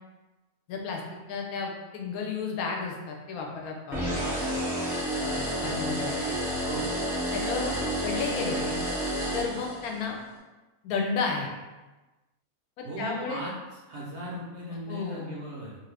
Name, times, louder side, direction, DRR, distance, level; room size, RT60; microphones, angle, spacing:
voice 1, 0.7-1.0 1.3-4.5 5.2-6.4 7.3-7.8 8.0-8.8 9.3-10.2 10.8-11.5 12.8-13.4 14.7-15.3, left 4 dB, 80° left, 1 dB, 1.0 m, -33 dB
sound 1, 3.9-10.1, equal, 5° right, 0.3 m, -30 dB
voice 2, 6.7-7.0 12.8-15.8, equal, 65° right, -5 dB, 0.7 m, -37 dB
2.6 x 2.5 x 3.3 m, 1.1 s
omnidirectional pair, 1.6 m